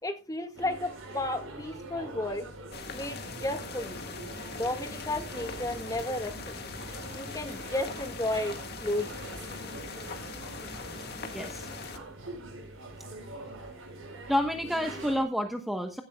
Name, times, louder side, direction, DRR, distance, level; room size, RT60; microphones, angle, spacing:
voice 1, 0.0-2.5 2.9-4.0 4.5-6.5 7.1-9.3, left 1 dB, 20° left, 6 dB, 1.8 m, -33 dB
sound 1, 0.5-15.2, right 2 dB, 85° right, 5.8 m, -44 dB
sound 2, 2.7-12.0, left 4 dB, 55° left, 1.8 m, -41 dB
voice 2, 11.3-11.7 14.3-16.0, equal, ahead, 4 dB, 1.1 m, -29 dB
16.0 x 12.5 x 2.3 m, 0.30 s
head